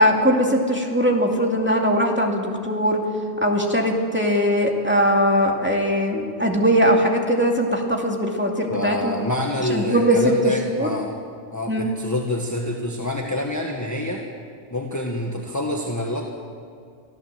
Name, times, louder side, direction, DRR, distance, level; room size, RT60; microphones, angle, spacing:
voice 1, 0.0-3.0 3.4-9.1 9.7-10.2 10.4-10.9 11.7-11.9, equal, 10° right, 0 dB, 2.5 m, -20 dB
voice 2, 8.7-11.1 11.5-14.3 14.7-16.3, left 1 dB, 15° left, 0 dB, 1.5 m, -27 dB
25.0 x 15.0 x 7.6 m, 2.3 s
omnidirectional pair, 1.3 m